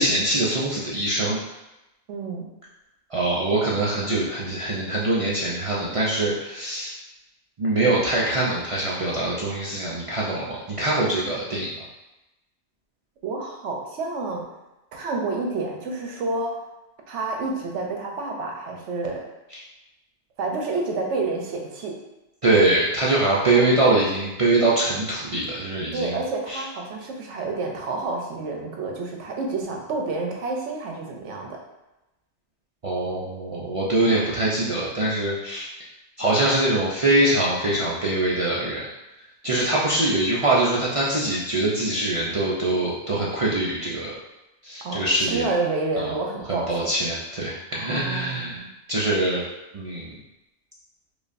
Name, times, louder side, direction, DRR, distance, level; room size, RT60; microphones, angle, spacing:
voice 1, 0.0-1.4 3.1-6.9 7.6-11.7 19.5-19.6 22.4-26.2 26.5-26.6 32.8-35.7 36.2-38.9 39.4-44.2 44.6-45.5 46.0-46.1 46.5-48.6 48.9-49.5 49.7-50.2, right 2 dB, 50° right, -6 dB, 0.4 m, -23 dB
voice 2, 2.1-2.4 13.2-14.4 14.9-16.5 17.1-19.2 20.4-21.9 23.4-23.7 25.9-31.6 44.8-46.9 47.7-48.7, right 3 dB, 80° right, 1 dB, 1.0 m, -29 dB
4.9 x 2.3 x 2.5 m, 0.97 s
omnidirectional pair, 1.2 m